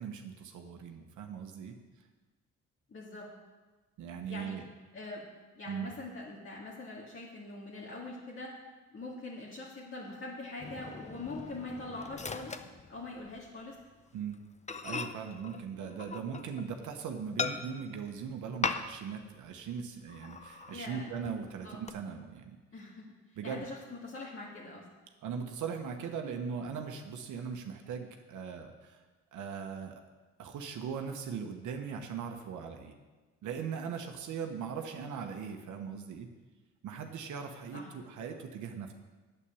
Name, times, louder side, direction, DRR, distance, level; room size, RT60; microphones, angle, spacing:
voice 1, 0.0-1.7 4.0-4.6 5.7-5.9 14.1-14.4 14.8-22.5 23.4-23.6 25.2-29.0 29.3-30.0 30.4-32.9 33.4-36.3 36.8-38.9, right 6 dB, 75° right, 4 dB, 1.2 m, -39 dB
voice 2, 2.9-3.3 4.3-4.6 4.9-5.2 5.5-8.6 8.9-12.6 12.9-13.8 20.7-21.1 21.6-21.8 22.7-23.1 23.4-24.8 37.7-37.9, left 2 dB, 45° left, -5 dB, 2.2 m, -43 dB
Microwave oven, 10.6-13.5 13.8-14.0 14.3-14.4 14.7-16.7 17.4-18.0 18.6-19.2 19.5-19.6 20.1-20.8 21.2-21.9, left 4 dB, 25° left, 0.7 m, -39 dB
8.7 x 8.3 x 7.1 m, 1.3 s
cardioid pair, 90°, 30 cm